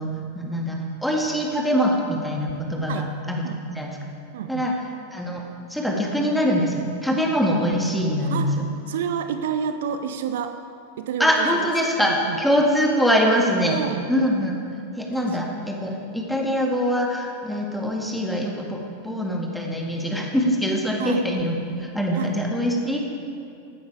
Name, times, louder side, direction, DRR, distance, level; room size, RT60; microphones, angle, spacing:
voice 1, 0.0-3.9 4.5-4.7 5.1-5.4 5.7-8.7 11.2-13.8 14.1-14.6 15.0-18.8 19.0-23.0, equal, ahead, -1 dB, 2.1 m, -23 dB
voice 2, 4.3-4.7 8.2-8.6 8.9-10.6 11.0-11.7 12.0-12.4 13.6-14.1 15.1-15.4 21.0-21.2 22.1-22.3, right 8 dB, 60° right, 9 dB, 0.5 m, -29 dB
15.5 x 9.4 x 4.8 m, 2.5 s
figure-of-eight pair, 90°, 0 cm